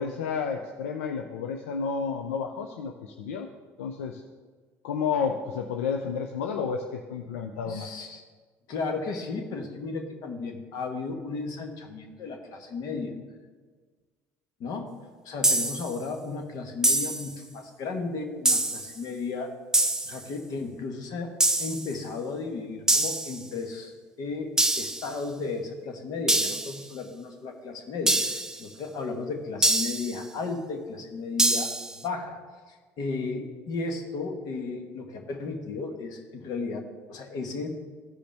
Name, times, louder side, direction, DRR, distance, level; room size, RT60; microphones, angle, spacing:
voice 1, 0.0-3.5 3.8-4.2 4.8-7.9, left 6 dB, 90° left, 4 dB, 0.5 m, -31 dB
voice 2, 7.6-8.2 8.7-13.1 14.6-14.9 15.2-19.5 20.0-21.3 21.6-31.7 31.9-32.4 32.7-37.7, left 4 dB, 65° left, 4 dB, 1.3 m, -34 dB
sound 1, 15.4-15.9 16.8-17.4 18.5-18.9 19.7-20.2 21.4-21.9 22.9-23.4 24.6-25.1 26.3-26.8 28.1-28.6 29.6-30.2 31.4-32.0, right 2 dB, 10° right, 0.5 m, -24 dB
14.5 x 5.1 x 3.4 m, 1.4 s
hypercardioid pair, 70°, 7 cm